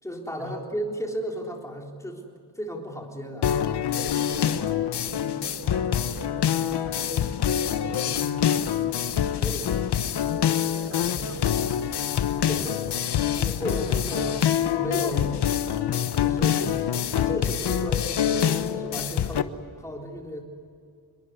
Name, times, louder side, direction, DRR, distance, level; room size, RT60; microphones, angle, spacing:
voice 1, 0.0-2.2 2.6-3.5 9.3-9.8 12.5-13.0 13.4-14.4 14.7-15.5 16.2-16.8 17.1-20.4, equal, 10° left, 0 dB, 3.9 m, -34 dB
sound 1, 3.4-19.4, left 9 dB, 80° left, 1.1 m, -25 dB
voice 2, 3.9-8.8 10.6-12.3 13.9-14.5, right 1 dB, 40° right, 4 dB, 4.9 m, -41 dB
28.0 x 22.0 x 8.1 m, 2.2 s
wide cardioid pair, 155°, 40 cm